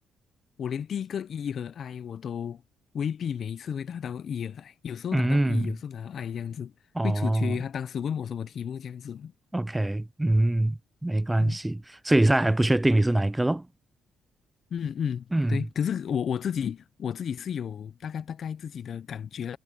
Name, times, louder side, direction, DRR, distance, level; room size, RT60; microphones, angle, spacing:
voice 1, 0.6-2.6 2.9-6.7 7.0-9.3 11.4-11.6 14.7-19.6, left 8 dB, 60° left, 0.6 m, -33 dB
voice 2, 5.1-5.7 7.0-7.6 9.5-13.7 15.3-15.6, right 1 dB, 10° right, 0.5 m, -24 dB
cardioid pair, 90°, 0 cm